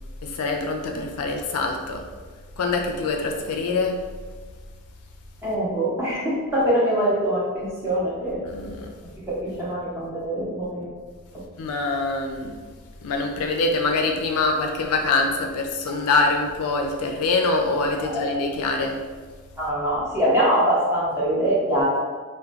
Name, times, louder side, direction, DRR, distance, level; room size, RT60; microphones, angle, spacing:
voice 1, 0.2-2.0 2.6-4.0 8.4-8.9 11.6-12.6 13.0-19.0, left 3 dB, 80° left, 2 dB, 0.4 m, -24 dB
voice 2, 5.4-8.4 9.2-10.9 18.0-18.3 19.6-21.8, right 1 dB, 10° right, -7 dB, 0.8 m, -23 dB
2.3 x 2.2 x 3.9 m, 1.5 s
head